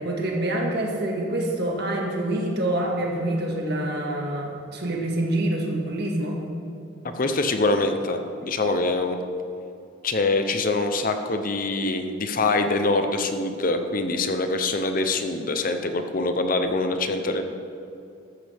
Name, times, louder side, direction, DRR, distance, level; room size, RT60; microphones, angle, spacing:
voice 1, 0.0-6.4, right 1 dB, 55° right, 0 dB, 2.0 m, -26 dB
voice 2, 7.2-9.2 10.0-17.4, left 2 dB, 40° left, 7 dB, 0.7 m, -24 dB
14.0 x 13.5 x 3.6 m, 2.6 s
head